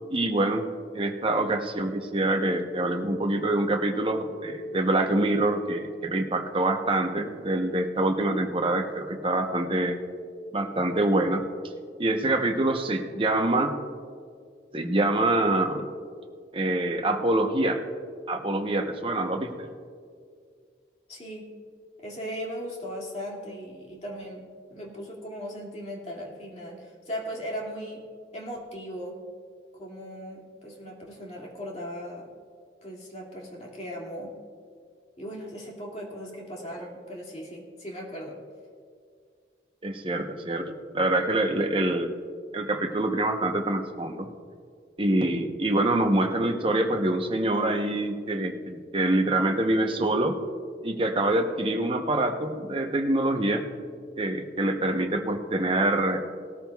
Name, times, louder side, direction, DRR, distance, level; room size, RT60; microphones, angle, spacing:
voice 1, 0.1-0.7 0.9-10.0 10.5-11.4 12.0-13.7 14.7-15.9 16.5-17.8 18.3-19.7 39.8-42.1 42.5-44.3 45.0-50.4 50.8-53.7 54.2-56.2, right 1 dB, 30° right, 4 dB, 0.8 m, -25 dB
voice 2, 21.1-21.5 22.0-24.4 24.7-28.0 28.3-29.2 29.7-32.3 32.8-34.3 35.2-38.4, equal, 35° left, -2 dB, 2.2 m, -38 dB
18.5 x 13.5 x 2.3 m, 2.1 s
head